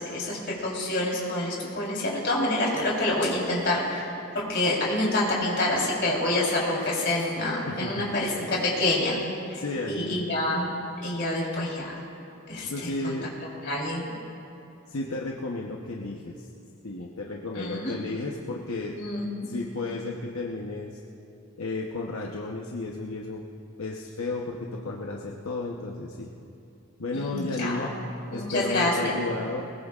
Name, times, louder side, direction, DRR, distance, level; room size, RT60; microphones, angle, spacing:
voice 1, 0.0-9.2 9.5-9.6 9.9-10.7 11.0-12.0 12.5-13.1 13.6-14.0 17.6-18.0 18.9-19.5 27.1-27.9 28.3-29.2, left 1 dB, 50° left, -4 dB, 3.7 m, -27 dB
Drawer open or close, 2.3-4.1 4.9-6.2 6.6-7.5 7.8-8.9, left 1 dB, 25° left, 3.7 m, -46 dB
voice 2, 7.7-8.0 9.5-10.1 12.6-13.3 14.9-16.5 16.8-19.0 19.4-21.0 21.6-23.4 23.8-26.3 27.0-28.0 28.3-29.6, left 2 dB, 75° left, -1 dB, 0.9 m, -33 dB
20.5 x 20.5 x 2.5 m, 2.6 s
head